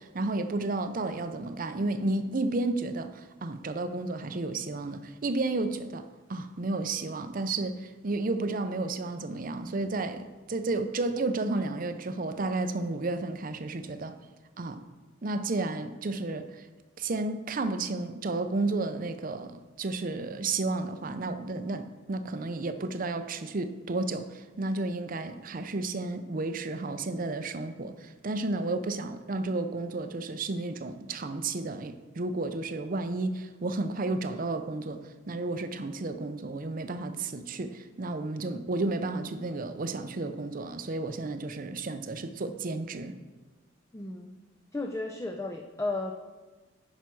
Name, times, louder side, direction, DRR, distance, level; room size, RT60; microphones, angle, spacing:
voice 1, 0.0-14.1 14.6-14.8 15.2-16.7 17.0-35.0 35.3-43.1, right 2 dB, 45° right, 10 dB, 0.6 m, -32 dB
voice 2, 43.9-44.3 44.7-46.2, left 2 dB, 15° left, 3 dB, 0.4 m, -34 dB
10.5 x 5.8 x 4.7 m, 1.2 s
head